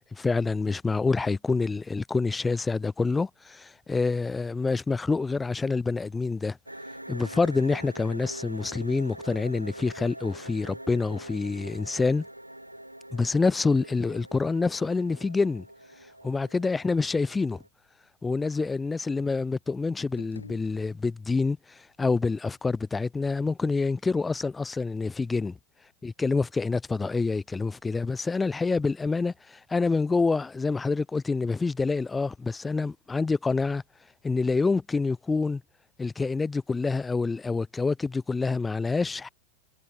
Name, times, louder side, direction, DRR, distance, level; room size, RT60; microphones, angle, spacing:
voice 1, 0.1-6.6 7.1-12.3 13.1-15.6 16.2-17.6 18.2-21.6 22.0-25.6 26.0-33.8 34.2-35.6 36.0-39.3, left 4 dB, 10° left, 0.8 m, -27 dB
sound 1, 6.7-17.7, right 1 dB, 85° right, 2.6 m, -44 dB
sound 2, 20.0-21.4, left 4 dB, 75° left, 1.3 m, -50 dB
figure-of-eight pair, 90°, 0 cm